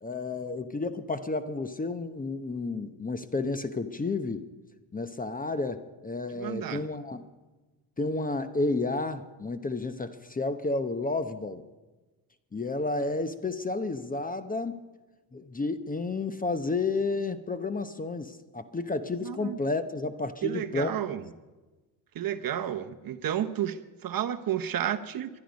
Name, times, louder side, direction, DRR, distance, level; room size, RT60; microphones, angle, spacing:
voice 1, 0.0-4.4 4.9-7.2 8.0-11.6 12.5-14.8 15.3-21.0, left 3 dB, 20° left, 11 dB, 0.8 m, -31 dB
voice 2, 6.3-6.8 19.2-19.6 20.4-21.2 22.1-25.3, right 10 dB, 45° right, 10 dB, 0.9 m, -31 dB
21.5 x 11.5 x 5.2 m, 1.2 s
supercardioid pair, 85°, 48 cm